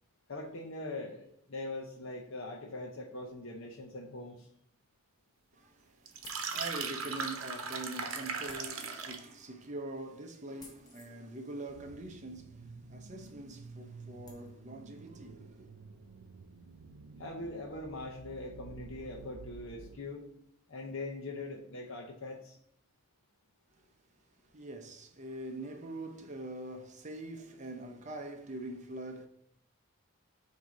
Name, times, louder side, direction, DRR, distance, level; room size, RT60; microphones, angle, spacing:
voice 1, 0.3-4.5 17.2-20.2 20.7-22.6, left 2 dB, 60° left, 0.7 m, -42 dB
voice 2, 5.5-12.6 12.9-15.7 24.5-29.3, right 2 dB, 35° right, 0.6 m, -44 dB
sound 1, 6.1-9.3, right 5 dB, 70° right, 0.8 m, -38 dB
sound 2, 6.2-6.9 8.5-9.0 10.6-11.1 13.1-13.2 13.6-13.7 14.3-14.5, left 3 dB, 20° left, 0.8 m, -55 dB
sound 3, 11.7-20.0, right 4 dB, 90° right, 0.5 m, -51 dB
7.5 x 2.8 x 5.0 m
head